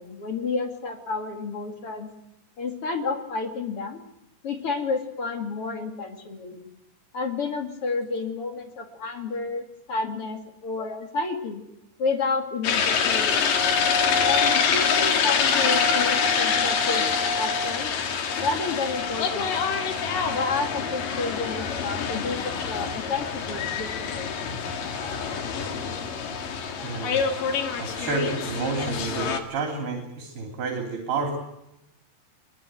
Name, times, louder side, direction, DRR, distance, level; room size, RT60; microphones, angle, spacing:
voice 1, 0.0-2.1 2.6-4.0 4.4-6.7 7.1-11.6 12.0-13.9 14.2-17.1 17.4-17.9 18.4-19.7 20.3-24.6, left 4 dB, 40° left, 5 dB, 2.5 m, -30 dB
sound 1, 12.6-29.4, left 6 dB, 60° left, 3.4 m, -25 dB
voice 2, 26.8-27.2 27.8-31.3, right 3 dB, 65° right, 3 dB, 5.0 m, -30 dB
23.0 x 22.0 x 9.0 m, 0.85 s
omnidirectional pair, 4.8 m